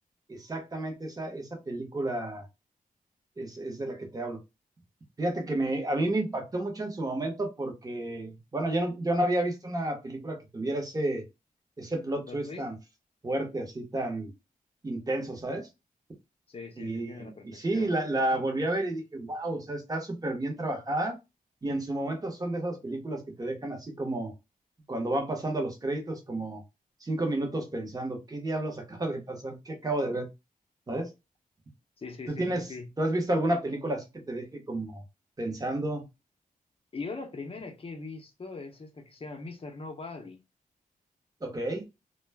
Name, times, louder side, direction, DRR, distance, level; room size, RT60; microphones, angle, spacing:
voice 1, 0.3-2.5 3.4-4.4 5.2-11.2 11.8-12.7 13.2-14.3 14.8-15.7 16.8-21.2 21.6-24.3 24.9-26.6 27.0-30.3 30.9-31.1 32.3-32.7 33.0-35.0 35.4-36.0 41.4-41.8, right 1 dB, 25° right, 0.8 m, -31 dB
voice 2, 12.3-12.6 16.5-17.9 32.0-32.9 36.9-40.4, left 3 dB, 40° left, 0.6 m, -41 dB
2.2 x 2.1 x 3.3 m
wide cardioid pair, 105°, 15 cm